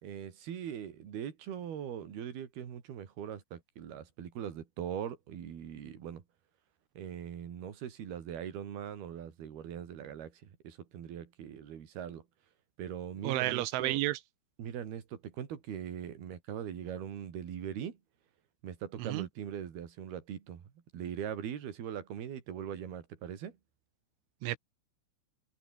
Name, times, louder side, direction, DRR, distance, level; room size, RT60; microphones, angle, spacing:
voice 1, 0.0-6.2 7.0-12.2 12.8-14.0 14.6-18.0 18.6-20.6 20.9-23.6, right 9 dB, 60° right, 4.7 m, -41 dB
voice 2, 13.2-14.2 19.0-19.3 24.4-24.6, right 17 dB, 90° right, 3.6 m, -31 dB
omnidirectional pair, 5.4 m